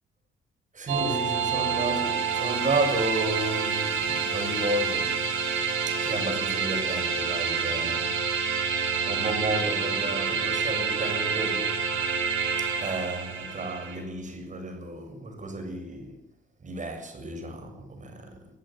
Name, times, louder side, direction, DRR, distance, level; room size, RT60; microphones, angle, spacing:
voice 1, 0.7-5.2 5.9-8.2 9.1-11.8 12.6-16.2 16.6-18.5, right 2 dB, 40° right, 7.1 m, -32 dB
sound 1, 0.9-14.0, right 6 dB, 90° right, 7.6 m, -28 dB
23.5 x 15.5 x 7.5 m
cardioid pair, 90°, 20 cm